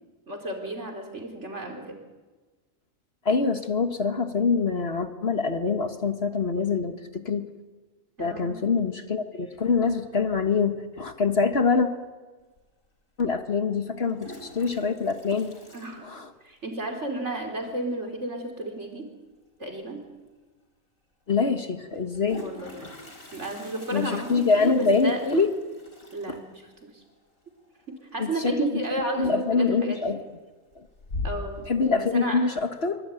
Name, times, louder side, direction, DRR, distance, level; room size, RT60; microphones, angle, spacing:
voice 1, 0.3-2.0 6.7-7.0 8.2-8.6 15.7-16.1 16.4-19.1 19.6-20.0 22.4-22.7 23.3-25.2 26.1-27.0 27.9-30.2 31.2-31.7 32.1-32.4, right 2 dB, 55° right, 2 dB, 4.1 m, -33 dB
voice 2, 3.2-7.5 8.2-11.9 13.2-15.5 16.0-16.3 21.3-22.5 22.8-22.9 23.9-25.5 26.3-26.4 28.2-28.8 29.2-30.2 30.8-30.9 31.7-33.0, left 4 dB, 45° left, 7 dB, 1.7 m, -25 dB
Toilet flush, 12.6-12.7 13.9-16.7 16.9-17.0 17.3-17.4 17.7-18.1 19.8-19.9 20.3-20.4 21.9-28.6 28.9-29.3 29.8-30.3 30.7-31.7, left 2 dB, 75° left, 5.1 m, -42 dB
24.5 x 23.5 x 9.1 m, 1.3 s
omnidirectional pair, 1.4 m